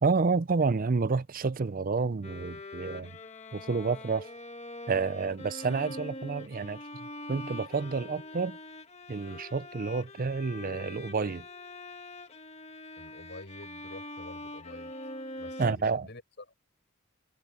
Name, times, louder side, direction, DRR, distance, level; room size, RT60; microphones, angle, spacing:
voice 1, 0.0-3.1 3.5-4.3 4.9-6.8 7.3-8.6 9.1-11.4 15.6-16.1, right 4 dB, 40° right, 0.5 m, -29 dB
Bowed string instrument, 2.2-15.7, left 2 dB, 30° left, 1.5 m, -43 dB
voice 2, 13.0-14.9 15.4-16.5, left 2 dB, 50° left, 6.1 m, -48 dB
head